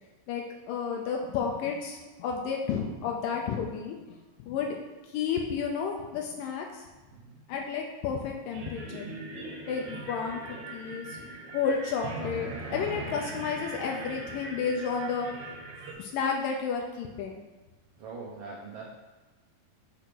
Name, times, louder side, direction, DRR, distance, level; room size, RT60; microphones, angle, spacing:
voice 1, 0.3-4.0 4.4-4.8 5.1-6.9 7.5-9.1 9.7-10.4 10.7-11.2 11.5-12.5 12.7-15.3 16.0-17.4, left 6 dB, 80° left, 0 dB, 2.3 m, -31 dB
voice 2, 7.1-7.4 18.0-18.9, right 4 dB, 85° right, -4 dB, 1.3 m, -42 dB
sound 1, 8.5-15.9, right 2 dB, 65° right, 2.3 m, -40 dB
6.4 x 3.4 x 5.9 m, 1.2 s
omnidirectional pair, 4.0 m